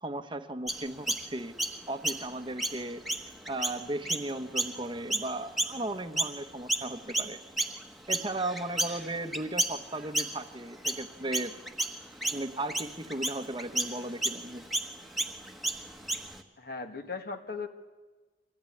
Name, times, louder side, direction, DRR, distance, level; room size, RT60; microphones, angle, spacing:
voice 1, 0.0-1.6 1.9-3.0 3.5-7.4 8.1-11.5 12.3-14.6, right 2 dB, 25° right, 8 dB, 1.0 m, -36 dB
Chirp tweet, 0.7-6.4 6.7-16.4, right 1 dB, ahead, 1.3 m, -33 dB
voice 2, 16.6-17.7, left 4 dB, 55° left, 6 dB, 1.7 m, -37 dB
25.5 x 16.5 x 9.9 m, 1.3 s
head